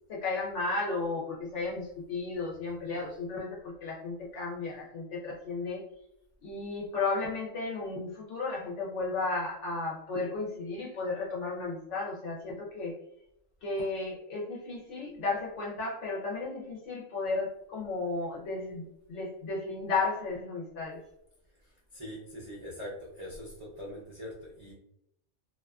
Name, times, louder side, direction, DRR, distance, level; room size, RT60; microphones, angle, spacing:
voice 1, 0.1-5.8 6.4-12.9 13.6-21.0, left 3 dB, 65° left, -3 dB, 0.9 m, -34 dB
voice 2, 21.5-24.7, left 1 dB, 45° right, -6 dB, 0.4 m, -43 dB
2.5 x 2.4 x 2.3 m, 0.80 s
omnidirectional pair, 1.4 m